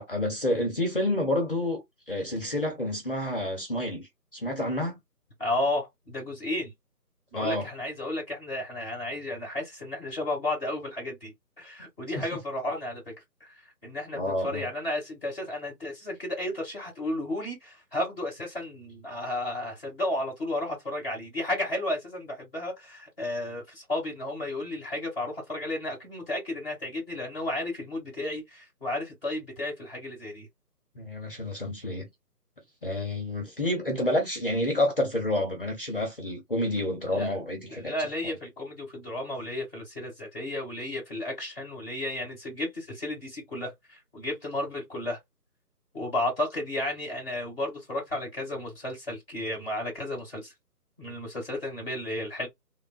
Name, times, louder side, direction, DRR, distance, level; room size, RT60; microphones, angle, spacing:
voice 1, 0.0-5.0 7.3-7.7 14.1-14.7 31.0-32.1 32.8-37.9, left 1 dB, 35° left, 0.7 m, -29 dB
voice 2, 5.4-6.7 7.3-13.1 13.4-30.5 37.1-45.2 45.9-50.5 51.0-52.5, left 1 dB, 5° right, 0.9 m, -33 dB
3.4 x 2.1 x 2.3 m
figure-of-eight pair, 160°, 48 cm